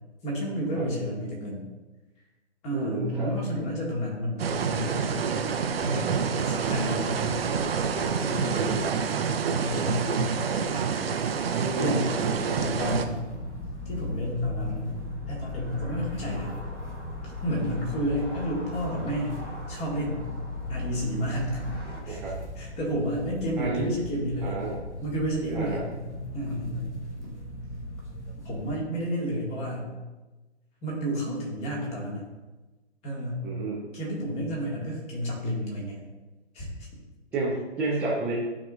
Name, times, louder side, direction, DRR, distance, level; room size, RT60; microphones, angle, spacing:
voice 1, 0.2-1.7 2.6-5.1 5.8-6.1 6.4-7.3 8.2-8.7 9.5-10.3 11.8-13.3 13.9-16.5 17.4-20.2 20.7-21.6 21.9-24.6 25.0-25.8 26.3-27.0 28.4-29.9 30.8-32.3 33.0-33.5 33.9-36.0 36.5-36.7, equal, 20° left, -2 dB, 1.8 m, -31 dB
voice 2, 2.7-3.3 8.2-8.9 11.5-12.1 22.0-22.3 23.6-23.9 24.4-24.7 25.5-25.8 33.4-33.8 37.3-38.3, right 3 dB, 5° right, -8 dB, 0.5 m, -31 dB
sound 1, 4.4-13.1, right 6 dB, 55° right, 0.7 m, -27 dB
sound 2, 11.9-22.0, equal, 90° left, 2.0 m, -45 dB
sound 3, 12.5-28.7, left 2 dB, 75° left, 1.6 m, -38 dB
11.5 x 4.8 x 2.4 m, 1.2 s
figure-of-eight pair, 130°, 35 cm